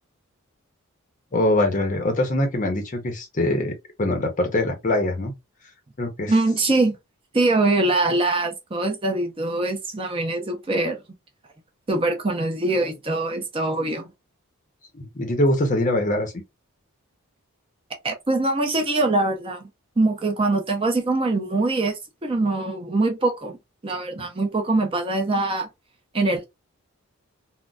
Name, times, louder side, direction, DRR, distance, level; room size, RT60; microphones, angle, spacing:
voice 1, 1.3-5.3 6.0-6.3 14.9-16.3, left 1 dB, 35° left, 0.6 m, -23 dB
voice 2, 6.3-7.0 7.3-11.0 11.9-14.1 18.0-19.7 20.0-23.6 23.8-25.7 26.1-26.4, right 2 dB, 25° right, 0.6 m, -23 dB
3.8 x 2.1 x 2.2 m
head